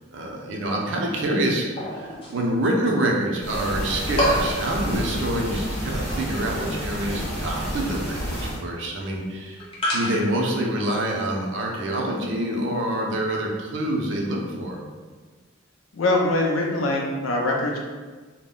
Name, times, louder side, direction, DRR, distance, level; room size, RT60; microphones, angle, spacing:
voice 1, 0.1-1.7 1.9-9.7 9.9-14.8, right 1 dB, 65° right, 0 dB, 0.5 m, -26 dB
sound 1, 1.8-2.8 3.1-3.2 3.6-3.8 4.2-10.5, equal, 25° left, 0.5 m, -29 dB
sound 2, 3.4-8.6, equal, 50° left, 0.8 m, -30 dB
voice 2, 15.9-17.8, left 2 dB, 85° left, 0 dB, 0.5 m, -23 dB
2.0 x 2.0 x 3.6 m, 1.4 s
head